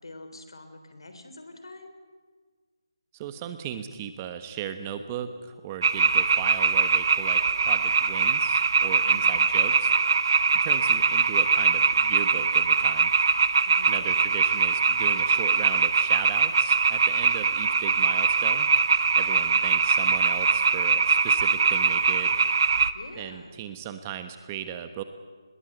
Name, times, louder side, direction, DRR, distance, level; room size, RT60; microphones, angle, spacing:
voice 1, 0.0-1.9 9.0-9.4 13.6-14.1 19.3-19.6 22.9-23.6, left 2 dB, 80° left, 8 dB, 3.7 m, -45 dB
voice 2, 3.1-9.9 10.6-13.1 13.9-18.7 19.2-22.4 23.2-25.0, right 9 dB, 25° right, 9 dB, 1.2 m, -37 dB
sound 1, 5.8-22.9, right 5 dB, 55° right, 1.1 m, -22 dB
22.5 x 21.0 x 8.0 m, 1.5 s
figure-of-eight pair, 160°, 3 cm